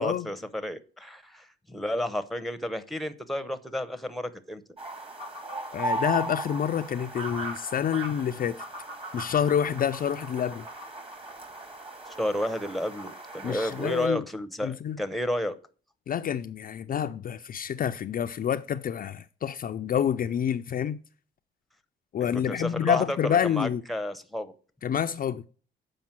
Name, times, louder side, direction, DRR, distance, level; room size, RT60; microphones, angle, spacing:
voice 1, 0.0-4.6 12.1-15.6 22.3-24.5, left 1 dB, ahead, 0.8 m, -31 dB
sound 1, 4.8-14.1, right 2 dB, 30° right, 2.0 m, -37 dB
voice 2, 5.7-8.6 9.1-10.6 13.4-14.2 14.6-15.0 16.1-21.0 22.1-23.8 24.8-25.4, left 9 dB, 45° left, 0.4 m, -28 dB
7.3 x 5.1 x 5.9 m
cardioid pair, 90°, 20 cm